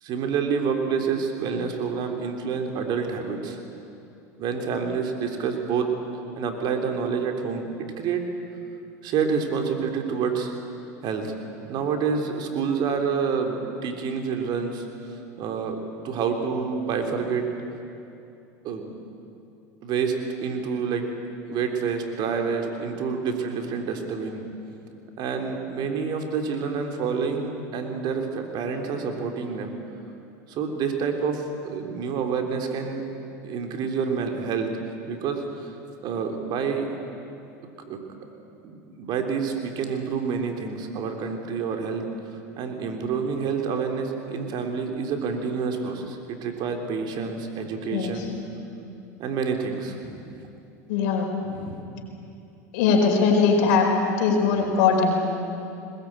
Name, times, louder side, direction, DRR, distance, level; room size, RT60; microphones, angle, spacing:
voice 1, 0.0-3.6 4.4-5.9 6.4-8.2 9.0-10.5 11.0-11.3 11.7-14.9 15.4-15.8 16.0-17.4 18.6-18.9 19.8-20.1 20.4-21.0 21.5-24.4 25.2-29.7 30.5-33.0 33.4-34.7 35.1-35.7 36.0-37.0 37.9-38.0 38.6-42.0 42.6-48.3 49.2-50.2 51.4-52.0, right 6 dB, 55° right, 4 dB, 3.5 m, -28 dB
voice 2, 50.9-51.3 52.7-53.9 54.2-55.2, left 5 dB, 70° left, 2 dB, 4.6 m, -20 dB
21.0 x 21.0 x 9.0 m, 2.7 s
supercardioid pair, 100°, 9 cm